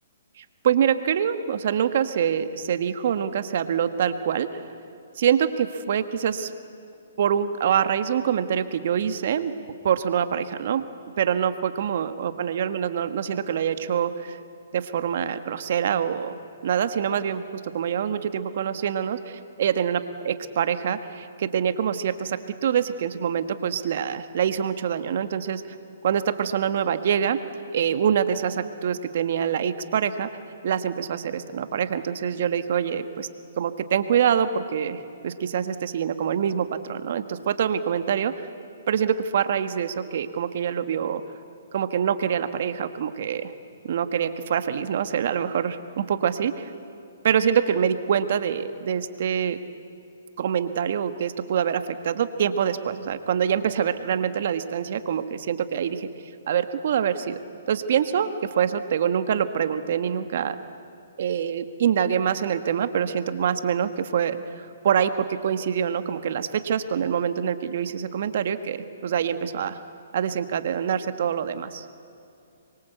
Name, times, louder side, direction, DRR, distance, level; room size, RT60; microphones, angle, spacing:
voice 1, 0.4-4.5 5.2-6.5 7.2-9.5 9.8-10.9 11.2-14.4 14.7-16.4 16.6-25.6 26.0-27.4 27.7-30.3 30.6-33.3 33.6-38.3 38.9-41.2 41.7-43.5 43.8-46.7 47.2-49.6 50.4-56.1 56.5-60.6 61.2-64.4 64.8-69.8 70.1-71.8, right 8 dB, 60° right, 10 dB, 1.6 m, -25 dB
25.5 x 23.5 x 8.2 m, 2.6 s
hypercardioid pair, 140°, 0 cm